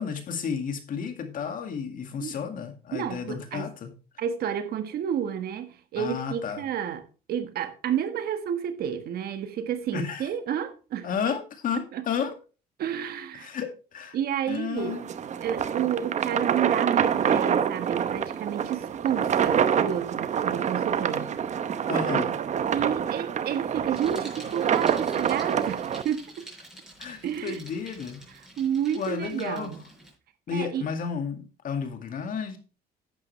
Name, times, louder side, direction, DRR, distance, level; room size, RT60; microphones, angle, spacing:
voice 1, 0.0-3.9 6.0-6.6 9.9-10.3 11.0-12.4 13.3-14.2 14.5-15.0 21.9-22.4 27.0-28.2 28.9-29.8 30.5-32.6, left 6 dB, 55° left, 2.1 m, -32 dB
voice 2, 2.9-3.7 4.2-7.0 7.3-11.1 11.9-12.0 12.8-13.5 14.1-15.0 15.4-21.4 22.7-26.3 27.2-27.6 28.6-29.8 30.5-30.8, right 9 dB, 65° right, 1.4 m, -30 dB
sound 1, 14.8-26.0, right 8 dB, 45° right, 0.8 m, -26 dB
Bicycle, 23.9-30.1, right 1 dB, 5° right, 5.7 m, -48 dB
11.0 x 8.8 x 3.2 m
cardioid pair, 110°, 17 cm